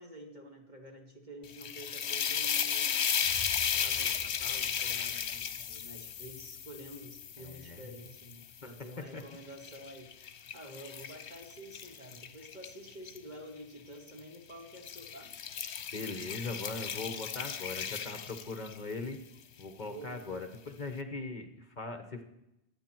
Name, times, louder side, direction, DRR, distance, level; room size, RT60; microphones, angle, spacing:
voice 1, 0.0-3.0 3.7-10.1 10.5-15.3 16.9-17.1 19.8-20.3, equal, 40° right, 1 dB, 2.4 m, -49 dB
sound 1, 1.4-8.7 9.2-13.2 14.1-14.4 14.7-18.9, left 8 dB, 80° left, 1.1 m, -35 dB
Boom, 3.2-11.1, equal, 25° right, 7.1 m, -55 dB
voice 2, 7.4-7.8 9.1-9.2 15.9-19.2 19.6-22.2, left 3 dB, 45° left, 6 dB, 1.2 m, -40 dB
23.5 x 8.8 x 4.5 m, 0.89 s
omnidirectional pair, 1.1 m